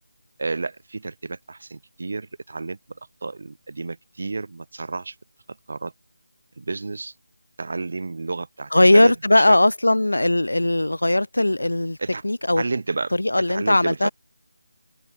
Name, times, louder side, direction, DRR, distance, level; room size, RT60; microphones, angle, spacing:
voice 1, 0.4-2.8 3.2-5.1 5.7-5.9 6.6-7.1 7.6-9.6 12.0-12.2 12.6-13.1 13.5-14.1, right 3 dB, 60° right, 1.7 m, -31 dB
voice 2, 8.7-12.0 12.2-12.6 13.1-14.1, left 1 dB, 90° left, 2.0 m, -18 dB
figure-of-eight pair, 165°, 0 cm